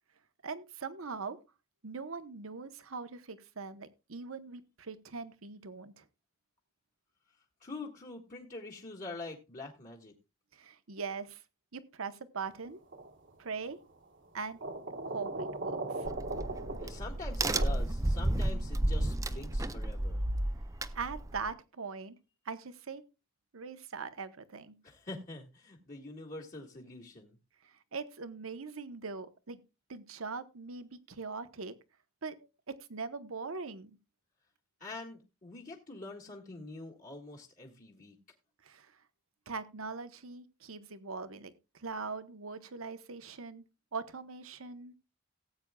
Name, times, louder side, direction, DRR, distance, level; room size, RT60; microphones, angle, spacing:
voice 1, 0.4-1.4 1.8-6.0 10.5-11.4 11.7-12.8 13.4-13.8 14.3-14.6 15.0-16.1 20.9-22.1 22.4-23.0 23.5-24.8 27.6-29.6 29.9-31.7 32.2-34.0 38.6-38.9 39.5-43.6 43.9-44.9, right 4 dB, 80° right, 11 dB, 1.0 m, -41 dB
voice 2, 7.6-10.1 16.8-20.2 24.8-27.4 34.8-38.2, left 2 dB, 40° left, -3 dB, 1.8 m, -45 dB
sound 1, 12.9-13.3 14.6-17.7, right 2 dB, 60° right, 1.3 m, -38 dB
Crack, 16.1-21.5, right 1 dB, 15° right, 0.5 m, -32 dB
18.0 x 8.6 x 2.3 m, 0.27 s
head